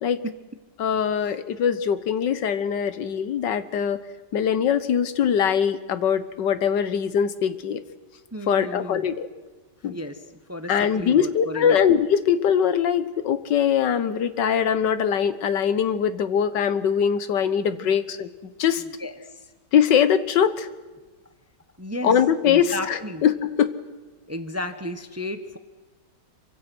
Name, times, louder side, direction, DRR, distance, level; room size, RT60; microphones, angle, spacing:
voice 1, 0.8-4.0 4.3-7.8 8.5-9.3 9.8-10.0 10.7-18.3 18.6-18.8 19.7-20.7 22.0-23.7, left 8 dB, 90° left, 13 dB, 1.7 m, -22 dB
voice 2, 8.3-9.0 9.9-10.2 10.5-11.8 17.8-17.9 19.0-19.2 21.8-22.1 22.4-23.2 24.3-25.6, left 1 dB, 10° right, 9 dB, 0.8 m, -33 dB
26.5 x 24.5 x 6.2 m, 1.2 s
omnidirectional pair, 1.8 m